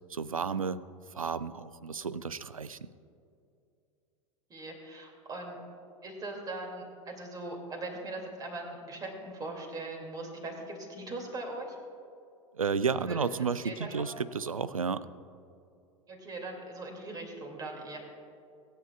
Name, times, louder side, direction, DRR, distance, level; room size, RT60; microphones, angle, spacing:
voice 1, 0.1-0.8 1.1-2.9 12.5-15.1, right 5 dB, 85° right, 17 dB, 0.4 m, -32 dB
voice 2, 4.5-5.6 6.0-11.8 13.1-13.3 13.6-14.0 16.1-18.0, right 2 dB, 20° right, 1 dB, 2.5 m, -40 dB
24.0 x 9.5 x 2.4 m, 2.5 s
figure-of-eight pair, 85°, 17 cm